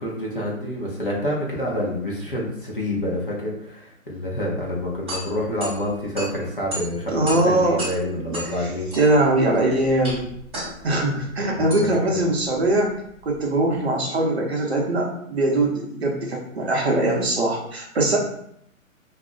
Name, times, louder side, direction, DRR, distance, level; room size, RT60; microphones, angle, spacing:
voice 1, 0.0-8.9 11.6-12.2, left 1 dB, 40° left, -3 dB, 0.6 m, -28 dB
sound 1, 4.7-13.7, right 1 dB, 20° right, 0.8 m, -36 dB
voice 2, 7.1-7.8 8.1-8.7 9.0-10.3 10.8-18.2, right 2 dB, 50° right, 0 dB, 0.6 m, -22 dB
2.4 x 2.0 x 3.6 m, 0.70 s
hypercardioid pair, 180°, 42 cm